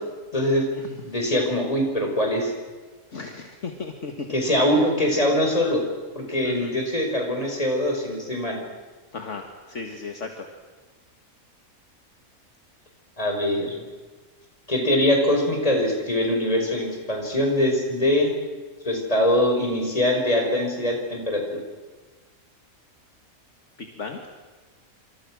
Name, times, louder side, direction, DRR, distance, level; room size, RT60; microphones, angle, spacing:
voice 1, 0.3-0.7 1.0-2.5 4.3-5.8 6.2-8.6 13.2-13.8 14.7-18.3 18.9-21.6, left 1 dB, 25° left, 2 dB, 5.2 m, -23 dB
voice 2, 3.1-4.7 6.4-6.7 9.1-10.5 23.8-24.2, left 4 dB, 55° left, 4 dB, 2.1 m, -35 dB
27.5 x 26.5 x 6.3 m, 1.3 s
omnidirectional pair, 1.5 m